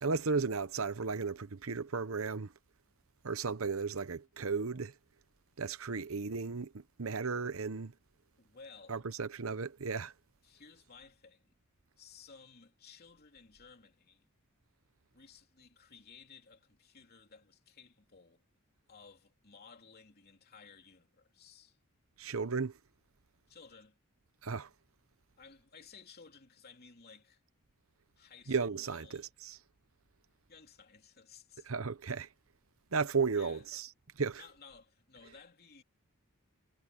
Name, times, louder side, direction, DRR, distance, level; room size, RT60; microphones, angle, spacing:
voice 1, 0.0-2.5 3.2-4.9 5.6-7.9 8.9-10.1 22.2-22.7 24.4-24.7 28.5-29.6 31.7-32.3 32.9-33.9 34.2-34.4, right 4 dB, 65° right, 0.9 m, -34 dB
voice 2, 8.4-9.1 10.4-11.5 12.0-14.3 15.1-18.4 18.9-21.8 23.5-24.0 25.4-27.4 28.2-29.3 30.5-31.7 33.3-33.6 34.3-35.8, left 5 dB, 45° left, 3.2 m, -57 dB
head